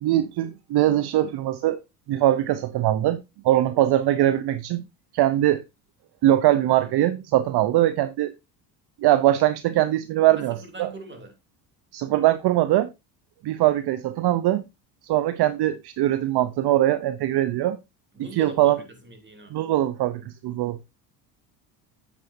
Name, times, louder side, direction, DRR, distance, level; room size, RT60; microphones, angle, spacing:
voice 1, 0.0-1.8 2.1-4.9 5.1-5.6 6.2-8.3 9.0-10.9 11.9-12.9 13.4-14.6 15.0-17.8 18.3-18.8 19.5-20.9, right 14 dB, 55° right, 0.7 m, -22 dB
voice 2, 10.5-11.4 18.1-19.6, right 3 dB, 20° right, 3.0 m, -41 dB
8.9 x 8.3 x 2.6 m
supercardioid pair, 75°, 49 cm